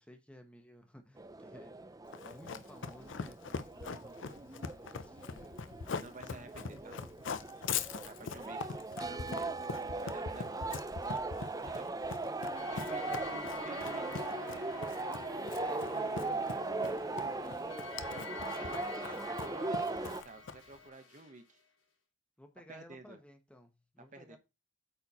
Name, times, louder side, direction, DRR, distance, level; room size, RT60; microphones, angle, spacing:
voice 1, 0.0-5.6 8.2-8.6 11.5-12.5 12.9-13.6 15.6-17.4 18.2-19.5 22.4-24.4, equal, 5° left, 1.1 m, -55 dB
sound 1, 1.2-20.2, right 3 dB, 20° right, 0.5 m, -39 dB
Run, 2.1-20.8, left 5 dB, 70° left, 0.6 m, -42 dB
voice 2, 5.9-7.0 8.0-8.6 9.0-10.7 11.8-11.9 12.7-14.3 18.0-21.6 22.7-23.2 24.1-24.4, right 3 dB, 40° right, 1.0 m, -50 dB
sound 2, 12.5-21.3, left 4 dB, 85° left, 3.4 m, -47 dB
8.5 x 4.5 x 4.2 m
head